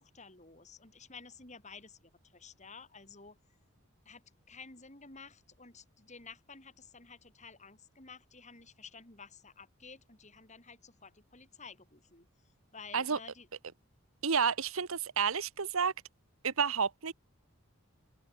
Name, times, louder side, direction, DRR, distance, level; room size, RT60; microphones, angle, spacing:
voice 1, 0.0-3.4 4.1-13.5, left 5 dB, 35° left, 5.2 m, -52 dB
voice 2, 14.2-15.9 16.4-17.1, right 6 dB, 75° right, 1.1 m, -30 dB
head